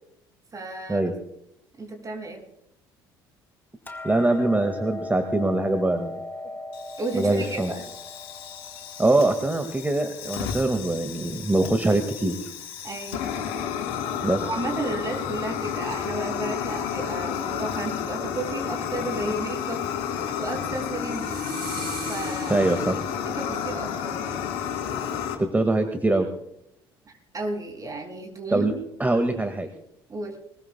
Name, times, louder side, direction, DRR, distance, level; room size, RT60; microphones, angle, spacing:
voice 1, 0.5-1.0 1.8-2.4 7.0-7.8 12.8-13.2 14.4-21.3 22.1-22.6 23.2-24.4 27.1-28.8 30.1-30.4, right 2 dB, 30° right, 1 dB, 6.2 m, -33 dB
Hammer, 3.9-10.1, left 2 dB, 15° left, 2.0 m, -38 dB
voice 2, 4.0-6.1 7.1-7.7 9.0-12.4 14.2-14.5 22.5-23.0 25.4-26.3 28.5-28.7 29.0-29.7, right 2 dB, 15° right, 7 dB, 1.9 m, -23 dB
Fire, 6.7-25.3, left 8 dB, 65° left, 3.2 m, -31 dB
sound 1, 20.9-23.4, right 5 dB, 80° right, 6.4 m, -41 dB
22.5 x 21.0 x 2.3 m, 0.75 s
hypercardioid pair, 55°, 12 cm